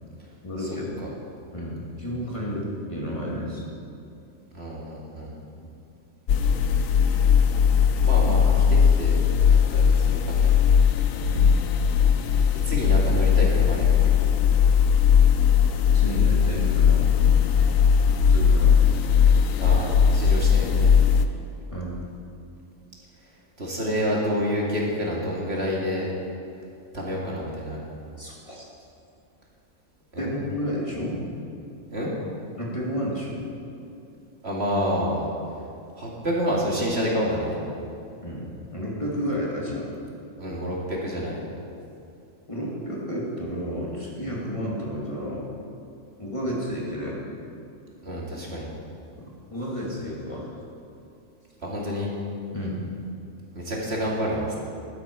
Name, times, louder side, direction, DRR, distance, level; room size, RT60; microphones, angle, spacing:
voice 1, 0.4-1.0 1.5-3.7 5.5-5.7 11.3-11.7 15.9-17.1 18.3-18.8 21.7-22.0 28.2-28.7 30.2-31.2 32.6-33.5 38.2-39.9 42.5-45.5 46.2-47.2 49.5-50.5 52.5-52.8, equal, 25° left, -5 dB, 2.5 m, -31 dB
voice 2, 4.5-5.4 8.0-9.2 9.7-10.2 12.2-14.1 19.6-20.9 23.6-26.1 26.9-27.8 30.1-30.3 31.9-32.1 34.4-35.3 36.0-37.6 40.4-41.4 48.0-48.7 51.6-52.1 53.5-54.6, equal, 50° right, -4 dB, 2.5 m, -28 dB
sound 1, 6.3-21.3, left 7 dB, 80° left, 1.1 m, -19 dB
16.0 x 12.5 x 4.7 m, 2.7 s
omnidirectional pair, 1.4 m